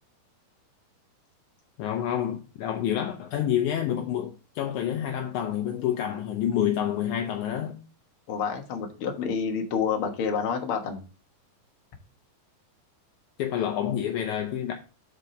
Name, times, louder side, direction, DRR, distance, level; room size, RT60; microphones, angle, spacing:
voice 1, 1.8-7.8 13.4-14.7, left 10 dB, 75° left, 1.9 m, -28 dB
voice 2, 8.3-11.0, left 6 dB, 55° left, 1.6 m, -28 dB
6.8 x 4.7 x 5.0 m
omnidirectional pair, 3.9 m